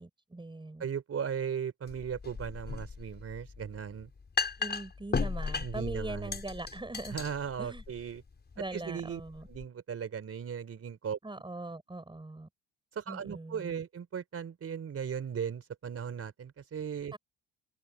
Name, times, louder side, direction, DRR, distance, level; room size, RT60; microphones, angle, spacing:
voice 1, 0.0-0.9 4.6-7.2 7.6-7.8 8.6-9.5 11.2-12.5 13.1-13.8 17.1-17.2, right 2 dB, 15° right, 6.8 m, -41 dB
voice 2, 0.8-4.1 5.6-6.4 7.1-8.2 8.6-9.2 9.5-11.2 12.9-17.1, right 7 dB, 45° right, 4.1 m, -37 dB
sound 1, 1.9-9.6, left 4 dB, 30° left, 5.6 m, -37 dB
supercardioid pair, 75°, 32 cm